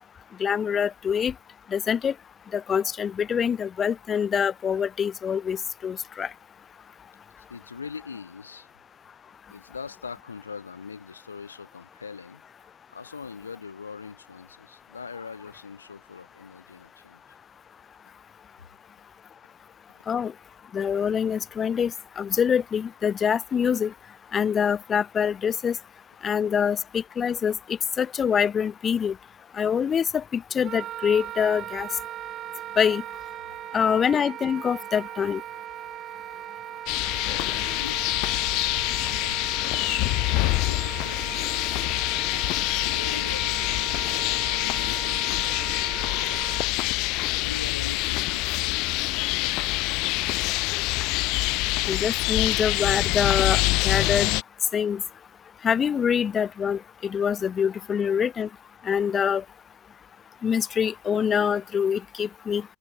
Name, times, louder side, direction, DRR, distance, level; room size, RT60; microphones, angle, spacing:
voice 1, 0.4-1.3 1.7-2.1 2.5-5.6 5.8-6.3 20.1-20.3 20.7-23.9 24.3-25.8 26.2-29.1 29.6-31.9 32.8-33.0 33.7-35.4 51.9-54.3 54.7-55.0 55.6-58.5 58.8-59.4 60.4-62.6, left 7 dB, 25° left, 1.4 m, -25 dB
voice 2, 7.5-8.7 9.5-17.2 37.8-38.6 39.2-39.4 40.3-41.9 42.4-46.6 47.3-50.0, left 5 dB, 85° left, 3.7 m, -42 dB
Wind instrument woodwind instrument, 30.6-46.7, right 12 dB, 35° right, 3.7 m, -38 dB
sound 1, 36.9-54.4, left 24 dB, 50° left, 0.4 m, -26 dB
hypercardioid pair, 90°, 0 cm